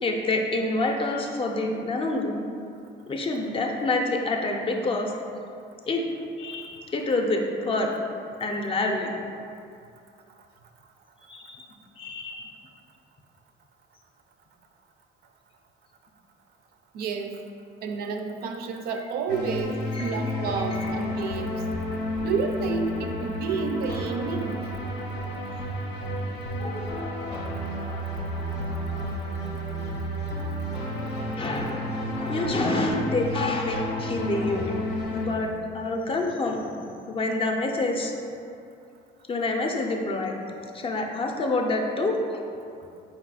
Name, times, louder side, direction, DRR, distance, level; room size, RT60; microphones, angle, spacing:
voice 1, 0.0-2.4 3.1-5.2 5.9-6.0 6.4-8.0 8.4-9.1 11.2-11.6 12.0-12.5 20.0-20.2 20.8-20.9 26.6-27.5 27.8-28.0 28.3-28.5 28.9-29.1 31.3-34.8 35.1-35.5 35.7-38.1 39.3-42.4, left 2 dB, 30° left, 2 dB, 0.5 m, -28 dB
voice 2, 16.9-17.3 17.8-21.6 22.2-24.6, right 5 dB, 70° right, 5 dB, 0.4 m, -30 dB
sound 1, 19.3-35.3, equal, 90° left, 0.7 m, -31 dB
4.5 x 2.3 x 4.0 m, 2.4 s
cardioid pair, 110°, 17 cm